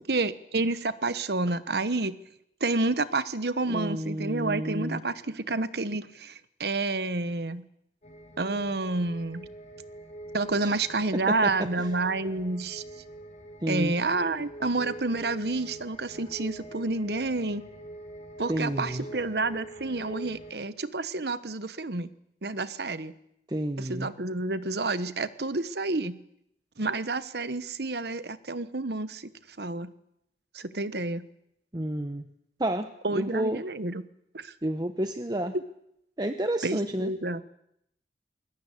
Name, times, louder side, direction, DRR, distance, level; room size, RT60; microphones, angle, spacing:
voice 1, 0.1-2.2 2.6-7.6 8.4-9.5 10.3-12.8 13.7-17.6 18.4-22.1 22.4-23.1 23.8-26.2 26.8-29.3 29.6-29.9 30.5-31.2 33.0-34.0 34.3-34.5 35.5-35.6 36.6-37.4, right 3 dB, 65° right, 14 dB, 1.1 m, -29 dB
voice 2, 3.7-5.0 10.6-10.7 11.3-11.9 13.6-13.9 18.5-19.1 23.5-24.1 31.7-32.3 32.6-33.6 34.6-35.6 36.2-37.1, right 1 dB, 25° right, 8 dB, 1.0 m, -30 dB
sound 1, 8.0-20.5, right 1 dB, 40° left, 4.4 m, -44 dB
21.5 x 21.0 x 8.3 m, 0.78 s
head